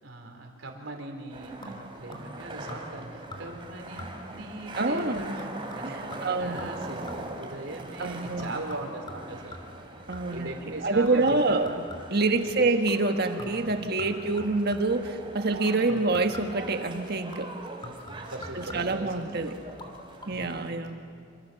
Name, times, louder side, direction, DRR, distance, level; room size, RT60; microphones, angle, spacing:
voice 1, 0.0-5.3 5.7-9.6 10.3-11.6 12.5-12.7 14.1-14.2 15.5-15.8 18.3-19.5, right 2 dB, 80° right, 2 dB, 4.1 m, -39 dB
sound 1, 1.3-20.7, right 2 dB, 25° right, 3.1 m, -42 dB
sound 2, 1.6-2.4 2.7-3.0 3.3-3.7 4.0-4.4 5.0-7.4 8.0-10.5 11.1-12.3 12.9-13.1 13.4-15.0 15.7-16.7 17.3-19.1 19.7-19.9 20.2-20.3, left 1 dB, 25° left, 2.9 m, -45 dB
voice 2, 4.7-5.3 5.8-6.7 8.0-8.5 10.1-10.5 10.8-11.7 12.1-17.5 18.5-19.6 20.3-21.0, right 3 dB, 55° right, 6 dB, 1.5 m, -26 dB
27.0 x 25.0 x 7.0 m, 2.4 s
head